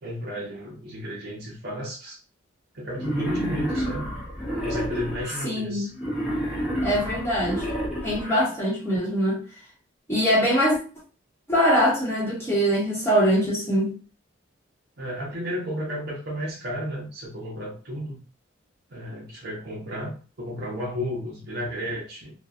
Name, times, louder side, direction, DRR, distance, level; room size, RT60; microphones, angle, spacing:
voice 1, 0.0-2.2 2.7-4.1 4.6-5.9 15.0-18.2 18.9-22.3, equal, 55° right, 0.7 m, -33 dB
Wild animals, 3.0-5.4 6.0-8.4, equal, ahead, 0.6 m, -30 dB
voice 2, 5.4-5.9 6.8-7.7 8.0-9.4 10.1-10.8 11.5-13.9, equal, 15° left, 1.0 m, -22 dB
2.8 x 2.2 x 2.4 m
head